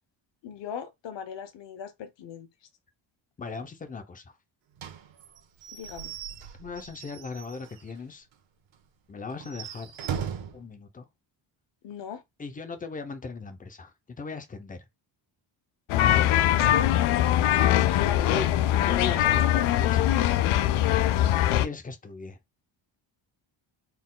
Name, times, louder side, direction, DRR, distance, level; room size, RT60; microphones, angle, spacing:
voice 1, 0.4-2.5 5.7-6.2 11.8-12.2 16.4-19.4, left 8 dB, 60° left, 0.9 m, -38 dB
voice 2, 3.4-4.4 6.6-8.3 9.1-9.9 10.5-11.1 12.4-14.9 18.0-20.6 21.6-22.4, left 4 dB, 20° left, 0.5 m, -38 dB
Slam / Squeak / Wood, 4.8-8.0 8.3-8.4 8.7-8.8 9.3-10.6, right 8 dB, 65° right, 1.2 m, -38 dB
sound 1, 15.9-21.7, left 12 dB, 80° left, 0.5 m, -22 dB
4.4 x 2.3 x 3.7 m
cardioid pair, 180°, 49 cm